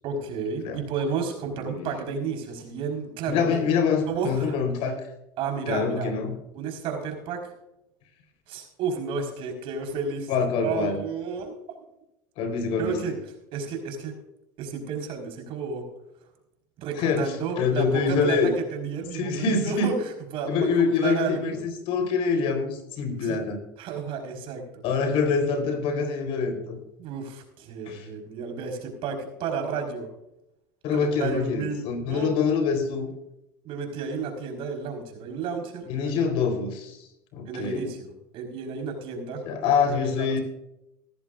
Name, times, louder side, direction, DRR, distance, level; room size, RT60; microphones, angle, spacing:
voice 1, 0.0-3.6 4.1-4.6 5.4-6.1 6.5-7.5 8.5-11.6 12.8-13.2 13.5-14.2 14.6-15.8 16.8-21.6 23.2-23.4 23.8-24.8 27.0-30.1 30.9-32.3 33.6-36.1 37.5-39.5 39.8-40.3, right 5 dB, 55° right, 4 dB, 4.6 m, -32 dB
voice 2, 3.3-5.0 5.7-6.4 10.3-11.0 12.4-13.1 17.0-18.5 19.1-19.9 20.4-23.6 24.8-26.8 27.9-28.1 30.8-33.1 35.9-37.0 37.3-37.9 39.5-40.4, left 5 dB, 60° left, 6 dB, 4.1 m, -25 dB
18.0 x 14.0 x 2.5 m, 0.85 s
supercardioid pair, 100°, 11 cm